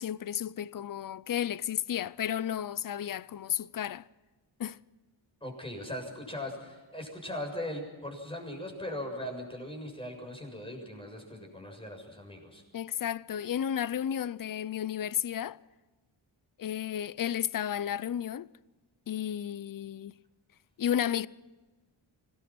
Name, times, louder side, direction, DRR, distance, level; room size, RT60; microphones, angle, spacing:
voice 1, 0.0-4.1 4.6-4.8 12.7-15.6 16.6-18.5 19.1-20.2 20.8-21.3, left 10 dB, 45° left, 0.6 m, -32 dB
voice 2, 5.4-12.6, left 1 dB, 10° left, 7.1 m, -39 dB
25.5 x 19.5 x 6.0 m
wide cardioid pair, 115°, 48 cm